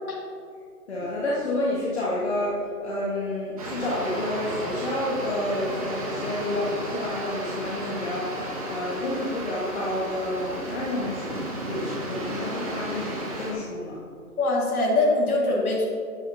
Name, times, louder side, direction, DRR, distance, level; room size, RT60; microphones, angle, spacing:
voice 1, 0.9-14.0, left 1 dB, 45° left, -6 dB, 1.7 m, -30 dB
sound 1, 3.6-13.5, right 1 dB, 25° right, 1.3 m, -33 dB
voice 2, 14.4-15.8, left 2 dB, 70° left, -4 dB, 2.3 m, -22 dB
9.6 x 9.3 x 2.8 m, 2.4 s
hypercardioid pair, 165°, 45 cm